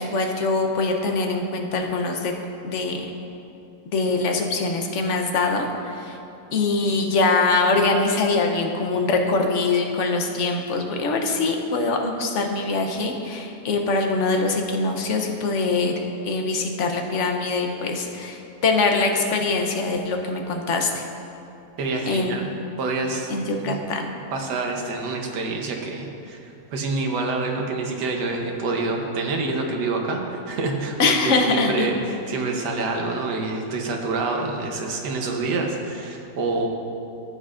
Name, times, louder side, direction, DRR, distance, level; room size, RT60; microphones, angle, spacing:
voice 1, 0.0-2.3 2.6-3.0 3.9-6.2 6.5-21.0 22.1-22.4 23.3-24.1 31.0-31.9, left 3 dB, 55° left, 3 dB, 0.9 m, -23 dB
voice 2, 21.8-22.5 22.8-23.3 23.6-23.8 24.3-26.5 26.7-36.7, right 3 dB, 75° right, 2 dB, 1.5 m, -27 dB
14.5 x 8.2 x 2.5 m, 2.7 s
omnidirectional pair, 1.8 m